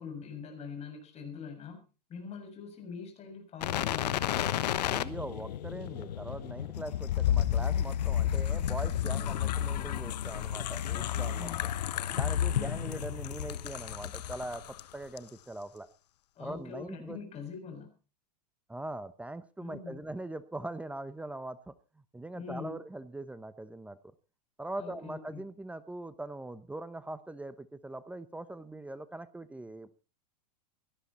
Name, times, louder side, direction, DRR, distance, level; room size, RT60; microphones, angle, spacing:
voice 1, 0.0-1.8 2.1-4.8 10.9-11.6 12.5-13.0 16.3-17.9 19.6-20.0 22.3-22.7 24.8-25.4, left 6 dB, 30° left, 5 dB, 6.8 m, -43 dB
sound 1, 3.6-14.8 15.2-15.3, left 11 dB, 75° left, 1.1 m, -31 dB
voice 2, 4.8-11.7 12.1-15.9 16.4-17.2 18.7-21.7 22.1-24.0 24.6-29.9, right 2 dB, 5° right, 14 dB, 0.9 m, -41 dB
18.0 x 13.0 x 4.3 m, 0.34 s
hypercardioid pair, 115°, 21 cm